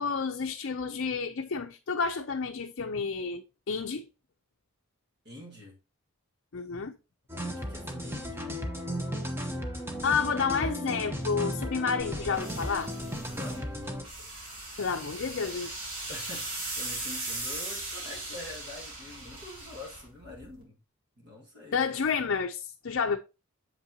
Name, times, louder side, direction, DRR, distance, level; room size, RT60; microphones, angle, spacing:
voice 1, 0.0-4.0 6.5-6.9 10.0-12.9 14.8-15.7 21.7-23.2, left 5 dB, 60° left, 0.5 m, -30 dB
voice 2, 5.2-5.8 7.4-8.5 13.3-13.7 16.1-20.8 21.2-21.8, left 1 dB, 50° right, 1.9 m, -45 dB
sound 1, 7.3-14.0, equal, 10° right, 0.8 m, -35 dB
sound 2, 12.0-20.6, right 2 dB, 75° right, 2.9 m, -39 dB
7.4 x 5.5 x 2.8 m
head